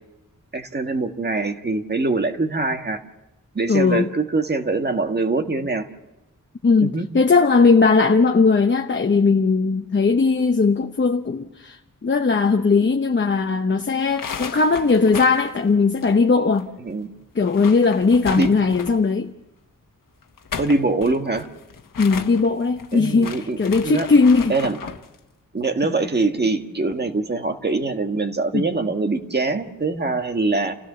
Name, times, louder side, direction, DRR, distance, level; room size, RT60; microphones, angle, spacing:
voice 1, 0.5-3.0 3.5-5.9 6.8-7.1 16.8-17.1 18.4-18.5 20.6-21.5 22.9-23.6 23.8-24.1 24.5-24.8 25.5-30.7, right 3 dB, 30° right, 1.7 m, -23 dB
voice 2, 3.7-4.1 6.6-11.8 12.0-16.7 17.4-19.3 22.0-24.5 28.5-28.6, left 4 dB, 35° left, 0.9 m, -18 dB
sound 1, 14.0-16.6 16.9-17.0 17.3-19.1 20.2-25.1, left 6 dB, 80° left, 1.3 m, -35 dB
29.0 x 16.5 x 6.8 m
wide cardioid pair, 140°, 32 cm